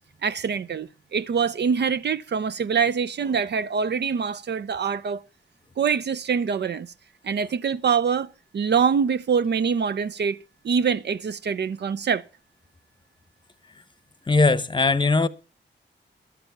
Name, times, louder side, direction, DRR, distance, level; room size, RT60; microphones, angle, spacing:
voice 1, 0.2-5.2 5.8-6.9 7.2-8.3 8.5-10.4 10.6-12.2, right 6 dB, 60° right, 0.6 m, -24 dB
voice 2, 14.3-15.3, left 3 dB, 25° left, 0.8 m, -19 dB
12.5 x 6.9 x 7.1 m
cardioid pair, 70°, 20 cm